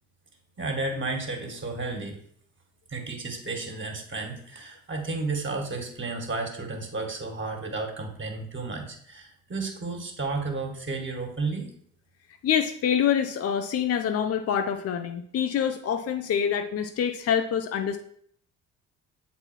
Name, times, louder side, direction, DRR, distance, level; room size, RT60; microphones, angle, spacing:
voice 1, 0.6-2.2 2.9-11.7, right 3 dB, 30° right, 2 dB, 1.9 m, -32 dB
voice 2, 12.4-18.0, left 8 dB, 40° left, 7 dB, 0.6 m, -26 dB
7.4 x 4.1 x 4.5 m, 0.65 s
hypercardioid pair, 55°, 37 cm